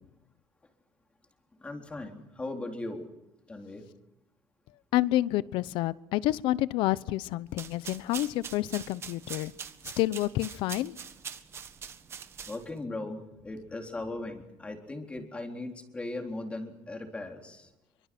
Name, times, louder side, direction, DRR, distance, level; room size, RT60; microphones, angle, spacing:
voice 1, 1.6-3.1 3.5-3.9 12.4-17.7, left 2 dB, 15° left, 3 dB, 3.9 m, -38 dB
voice 2, 4.9-9.5 10.0-10.9, left 15 dB, 80° left, 18 dB, 0.9 m, -28 dB
sound 1, 7.5-12.8, right 7 dB, 30° right, 1.5 m, -43 dB
27.5 x 24.5 x 6.2 m, 0.91 s
cardioid pair, 160°, 8 cm